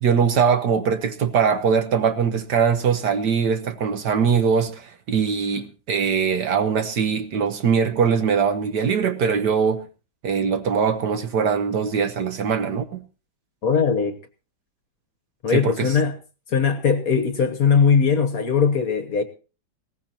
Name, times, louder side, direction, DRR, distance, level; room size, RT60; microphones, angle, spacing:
voice 1, 0.0-9.9 10.2-13.0 15.5-15.9, right 6 dB, 60° right, 1.5 m, -22 dB
voice 2, 13.6-14.2 15.4-16.1 16.5-19.2, left 6 dB, 50° left, 1.4 m, -20 dB
20.0 x 17.0 x 2.9 m
omnidirectional pair, 2.2 m